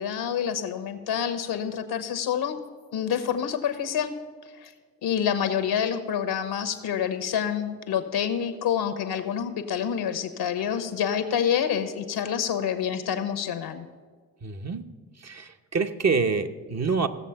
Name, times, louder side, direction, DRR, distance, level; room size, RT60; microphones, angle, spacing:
voice 1, 0.0-2.6 2.9-4.1 4.5-4.7 5.0-13.9, left 8 dB, 85° left, 1.0 m, -27 dB
voice 2, 14.4-14.9 15.2-17.1, right 5 dB, 45° right, 1.0 m, -26 dB
16.0 x 7.1 x 5.7 m
supercardioid pair, 45°, 38 cm